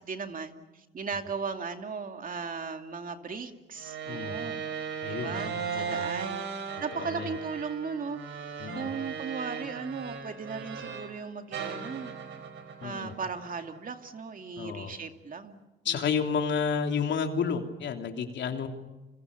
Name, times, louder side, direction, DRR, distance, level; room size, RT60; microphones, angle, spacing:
voice 1, 0.0-4.6 5.1-6.4 6.8-8.4 8.7-12.1 12.8-15.6 15.9-16.3, right 5 dB, 45° right, 5 dB, 2.5 m, -37 dB
sound 1, 3.8-11.2 11.5-13.9, right 6 dB, 70° right, 4.6 m, -37 dB
voice 2, 5.0-6.1 6.9-7.3 8.6-8.9 12.8-13.1 14.6-14.9 15.8-18.7, left 6 dB, 65° left, 4 dB, 3.2 m, -31 dB
29.5 x 26.0 x 6.9 m, 1.1 s
cardioid pair, 90°, 20 cm